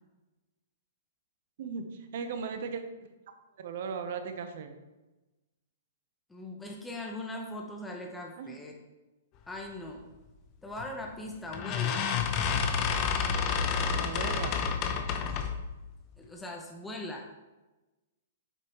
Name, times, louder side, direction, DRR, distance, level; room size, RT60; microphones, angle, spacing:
voice 1, 1.6-3.1 3.6-4.7 8.4-8.6 13.9-14.6, right 5 dB, 60° right, 8 dB, 0.9 m, -37 dB
voice 2, 6.3-8.7 9.5-10.1 10.6-12.1 16.2-17.3, left 1 dB, 10° left, 0 dB, 0.9 m, -40 dB
sound 1, 10.8-11.0 11.5-15.6, left 6 dB, 35° left, 0.8 m, -29 dB
8.1 x 5.7 x 3.1 m, 1.1 s
hypercardioid pair, 125°, 0 cm